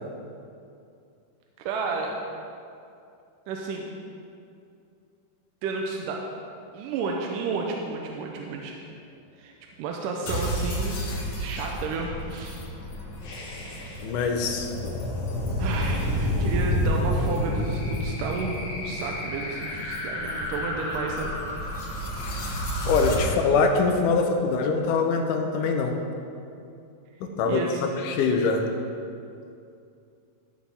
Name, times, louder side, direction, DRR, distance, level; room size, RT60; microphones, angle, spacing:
voice 1, 1.6-2.2 3.5-3.9 5.6-6.2 6.7-8.8 9.4-9.5 9.8-11.0 11.4-12.7 15.6-21.3 21.8-22.1 23.2-23.3 27.5-27.8, right 4 dB, 80° right, 0 dB, 2.2 m, -32 dB
sound 1, 10.3-23.2, left 1 dB, 60° left, 2.5 m, -29 dB
voice 2, 14.0-15.0 22.9-26.0 27.2-28.6, left 4 dB, 75° left, 4 dB, 2.2 m, -24 dB
14.5 x 6.6 x 3.4 m, 2.5 s
omnidirectional pair, 4.0 m